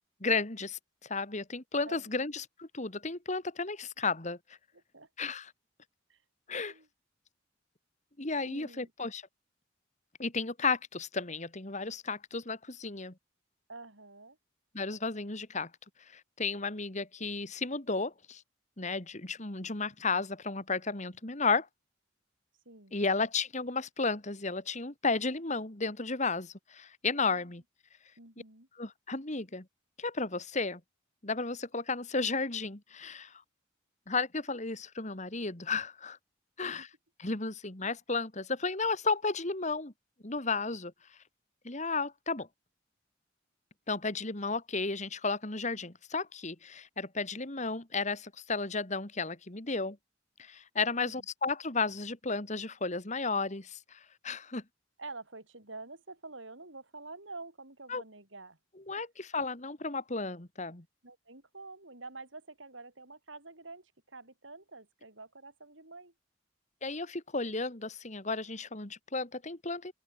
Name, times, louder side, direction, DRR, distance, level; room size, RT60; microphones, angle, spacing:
voice 1, 0.2-4.4 5.2-5.5 6.5-6.7 8.2-9.2 10.2-13.1 14.7-15.7 16.1-18.4 18.8-21.7 22.9-27.6 28.8-29.6 30.0-30.8 31.2-33.3 34.1-36.2 36.6-36.9 37.2-39.9 40.2-40.9 41.6-42.5 43.9-50.0 50.4-54.6 57.9-58.0 58.9-60.8 66.8-69.9, left 4 dB, 35° left, 2.3 m, -33 dB
voice 2, 4.7-5.1 6.1-6.2 6.5-6.9 8.4-8.9 13.7-14.4 22.7-23.0 28.2-28.7 36.6-36.9 51.0-51.3 55.0-58.6 61.0-66.1, right 3 dB, 80° right, 7.5 m, -48 dB
open air
head